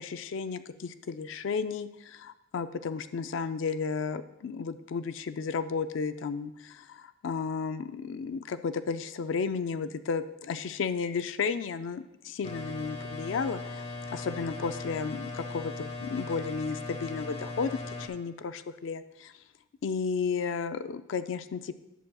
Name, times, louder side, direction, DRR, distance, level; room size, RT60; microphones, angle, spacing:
voice 1, 0.0-19.3 19.8-21.7, left 5 dB, 75° left, 12 dB, 0.4 m, -33 dB
sound 1, 12.4-18.1, left 3 dB, 35° left, 0.8 m, -39 dB
11.0 x 7.5 x 2.3 m, 0.92 s
head